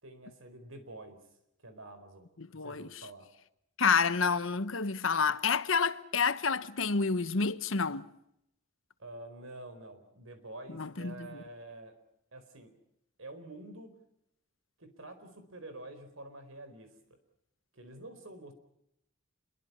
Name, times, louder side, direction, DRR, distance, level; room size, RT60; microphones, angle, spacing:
voice 1, 0.0-1.2 1.6-3.3 9.0-12.0 12.3-12.7 13.2-13.9 14.8-16.9 17.7-18.5, right 2 dB, 85° right, 4.4 m, -48 dB
voice 2, 2.4-3.0 3.8-8.1 10.7-11.4, left 5 dB, 75° left, 1.1 m, -29 dB
28.5 x 22.5 x 5.7 m
head